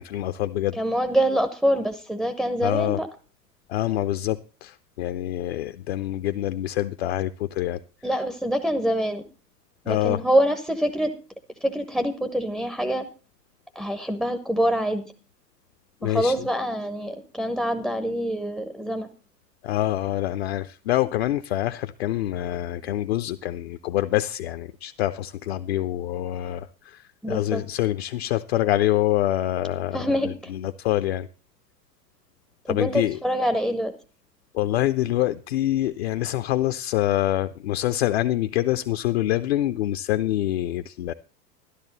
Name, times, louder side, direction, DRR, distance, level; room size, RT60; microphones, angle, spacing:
voice 1, 0.0-0.8 2.6-3.0 3.7-7.8 9.9-10.2 16.0-16.4 19.6-27.0 27.3-31.3 32.7-33.2 34.5-41.1, left 14 dB, 40° left, 0.6 m, -26 dB
voice 2, 0.7-3.1 8.0-9.2 9.9-11.1 11.6-13.0 13.8-15.1 16.0-19.1 27.2-27.6 29.9-30.5 32.7-33.9, equal, ahead, 0.6 m, -25 dB
13.0 x 12.0 x 4.0 m
figure-of-eight pair, 100°, 49 cm